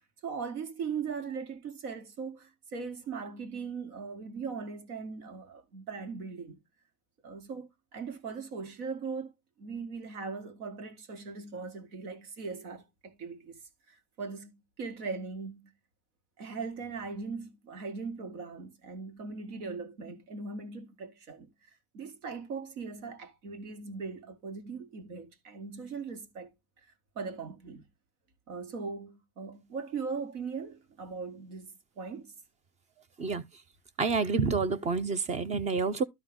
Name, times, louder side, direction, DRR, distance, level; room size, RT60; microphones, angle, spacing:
voice 1, 0.2-6.6 7.2-9.3 9.6-13.6 13.9-15.7 16.4-21.5 21.9-26.5 27.2-27.8 28.5-31.7 32.0-32.3, right 5 dB, 75° right, 2.2 m, -39 dB
voice 2, 34.0-36.0, right 4 dB, 15° right, 0.4 m, -28 dB
12.5 x 4.7 x 3.6 m
supercardioid pair, 115°, 45 cm